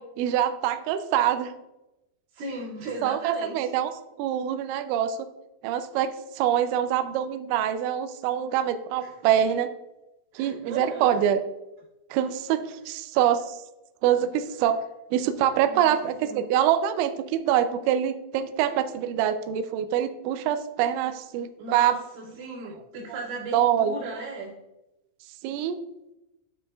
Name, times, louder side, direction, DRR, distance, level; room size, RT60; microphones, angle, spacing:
voice 1, 0.0-1.5 3.0-3.9 4.2-5.3 5.6-9.7 10.4-11.4 12.1-13.6 14.0-14.8 15.1-22.0 23.5-23.9 25.4-25.8, right 10 dB, 90° right, 9 dB, 2.6 m, -25 dB
voice 2, 2.3-3.7 9.0-9.1 10.3-11.2 12.9-13.0 15.6-16.4 21.6-24.5, right 3 dB, 70° right, -8 dB, 4.5 m, -36 dB
10.5 x 4.9 x 2.3 m, 0.94 s
omnidirectional pair, 5.9 m